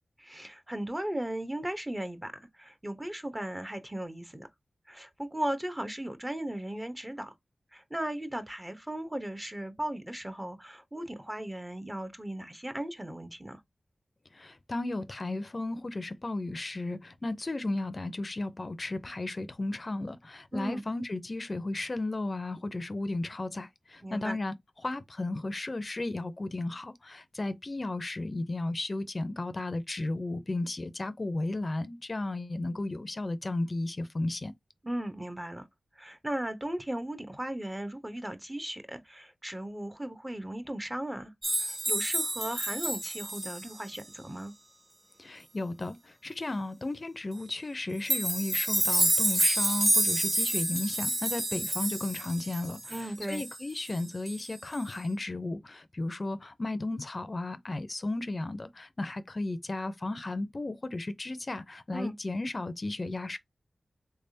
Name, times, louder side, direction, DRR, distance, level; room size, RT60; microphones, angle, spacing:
voice 1, 0.2-4.5 4.9-7.3 7.7-13.6 20.5-20.8 24.0-24.4 34.8-35.7 36.0-41.3 41.6-44.5 52.9-53.5 61.9-62.1, right 1 dB, 20° right, 0.9 m, -37 dB
voice 2, 14.3-24.5 24.8-34.5 45.2-63.4, left 2 dB, 45° left, 0.5 m, -34 dB
sound 1, 41.4-44.0 48.1-54.0 54.3-54.5 54.7-54.8, right 1 dB, 35° right, 1.8 m, -29 dB
3.6 x 3.4 x 2.7 m
cardioid pair, 50°, 0 cm